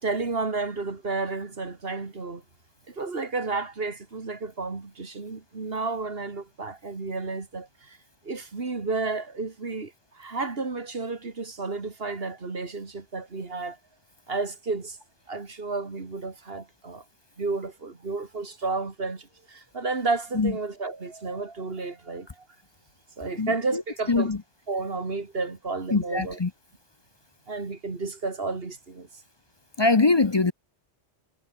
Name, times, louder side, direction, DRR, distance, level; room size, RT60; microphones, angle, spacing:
voice 1, 0.0-2.4 2.9-8.0 8.2-13.8 14.3-15.0 15.3-17.0 17.4-22.3 23.2-24.3 24.7-26.4 27.5-29.1, right 3 dB, 55° right, 2.4 m, -32 dB
voice 2, 23.4-23.8 24.1-24.4 25.9-26.5 29.8-30.5, left 3 dB, 30° left, 0.6 m, -22 dB
omnidirectional pair, 1.2 m